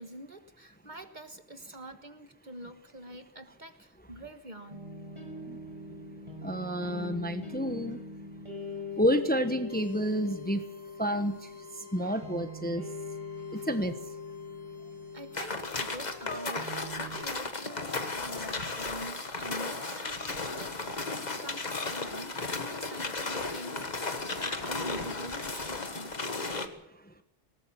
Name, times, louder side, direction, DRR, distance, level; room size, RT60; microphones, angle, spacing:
voice 1, 0.0-4.9 12.0-12.2 13.4-13.7 15.1-20.7 21.4-26.1 26.5-26.6, right 1 dB, 40° right, 9 dB, 1.4 m, -45 dB
sound 1, 4.7-17.2, left 3 dB, 25° right, 6.1 m, -42 dB
voice 2, 6.4-8.0 9.0-10.6 11.0-11.4 11.9-12.8 13.5-13.9, equal, 10° left, 8 dB, 1.1 m, -29 dB
sound 2, 9.7-20.9, left 4 dB, 75° left, 4.8 m, -58 dB
sound 3, 15.3-26.7, left 3 dB, 35° left, 1.6 m, -35 dB
20.0 x 19.0 x 7.1 m, 0.78 s
omnidirectional pair, 1.3 m